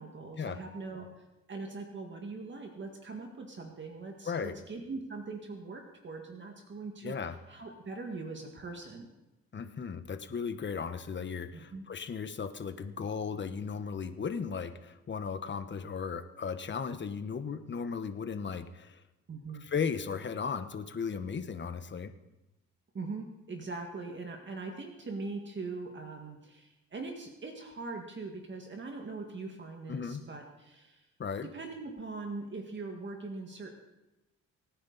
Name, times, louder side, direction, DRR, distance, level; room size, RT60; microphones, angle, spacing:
voice 1, 0.0-9.1 11.5-11.8 19.3-19.6 22.9-31.1 31.5-33.7, right 3 dB, 40° right, 2 dB, 1.9 m, -41 dB
voice 2, 7.0-7.4 9.5-19.0 19.6-22.1 29.9-30.2 31.2-31.5, left 6 dB, 40° left, 10 dB, 1.2 m, -36 dB
24.0 x 9.7 x 4.1 m, 1.0 s
cardioid pair, 90°, 30 cm